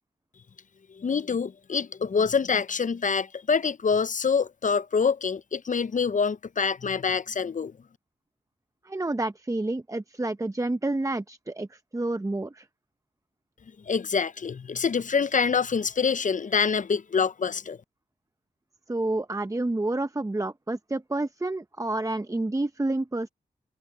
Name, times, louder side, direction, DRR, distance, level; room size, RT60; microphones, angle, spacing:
voice 1, 1.0-7.7 13.9-17.8, left 5 dB, 50° left, 0.6 m, -26 dB
voice 2, 8.8-12.7 18.9-23.3, right 2 dB, 20° right, 0.8 m, -29 dB
cardioid pair, 40°, 17 cm